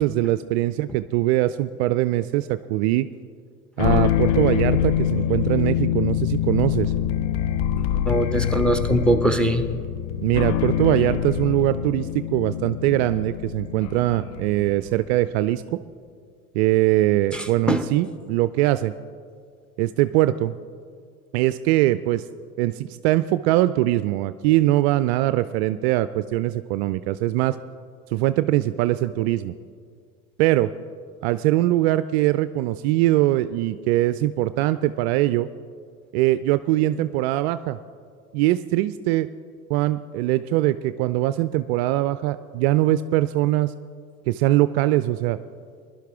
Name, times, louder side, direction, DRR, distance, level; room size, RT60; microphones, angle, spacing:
voice 1, 0.0-3.1 3.8-6.9 10.2-15.8 16.5-18.9 19.8-20.5 21.3-22.2 22.6-27.6 28.1-29.5 30.4-30.7 31.2-35.5 36.1-37.8 38.3-39.3 39.7-43.7 44.3-45.4, right 16 dB, 50° right, 13 dB, 0.4 m, -22 dB
sound 1, 3.8-15.2, left 10 dB, 50° left, 0.8 m, -25 dB
voice 2, 8.1-9.6 17.3-17.8, right 1 dB, ahead, 8 dB, 0.8 m, -21 dB
20.5 x 11.5 x 3.5 m, 2.1 s
figure-of-eight pair, 80°, 44 cm